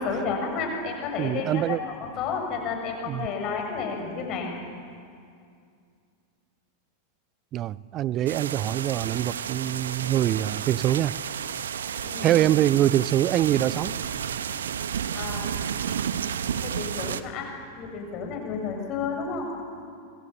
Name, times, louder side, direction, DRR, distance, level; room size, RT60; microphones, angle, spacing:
voice 1, 0.0-4.5 12.0-12.4 15.1-15.5 16.4-17.5 17.8-19.5, left 5 dB, 40° left, 3 dB, 7.2 m, -31 dB
voice 2, 1.2-1.8 3.1-3.3 7.5-11.1 12.2-13.9, right 13 dB, 35° right, 20 dB, 0.6 m, -24 dB
sound 1, 8.3-17.2, right 8 dB, 65° right, 1.1 m, -31 dB
28.5 x 25.5 x 7.6 m, 2.3 s
figure-of-eight pair, 90°, 0 cm